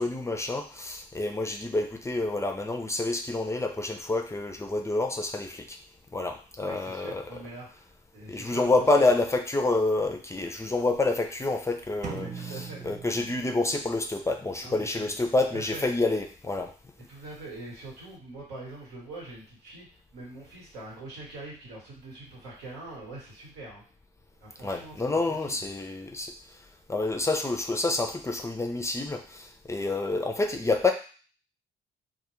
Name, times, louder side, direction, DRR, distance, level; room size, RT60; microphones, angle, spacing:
voice 1, 0.0-5.8 6.1-7.4 8.3-16.7 24.6-26.3 26.9-30.9, left 2 dB, 15° left, 4 dB, 0.4 m, -28 dB
voice 2, 6.6-7.8 8.1-9.1 12.0-12.8 14.6-15.1 15.5-15.8 17.1-19.9 20.1-23.8 24.4-24.9 25.3-25.6, right 2 dB, 85° right, -5 dB, 1.1 m, -43 dB
sound 1, 12.0-13.9, right 6 dB, 45° right, 0.5 m, -40 dB
2.2 x 2.0 x 3.0 m, 0.38 s
hypercardioid pair, 50°, 17 cm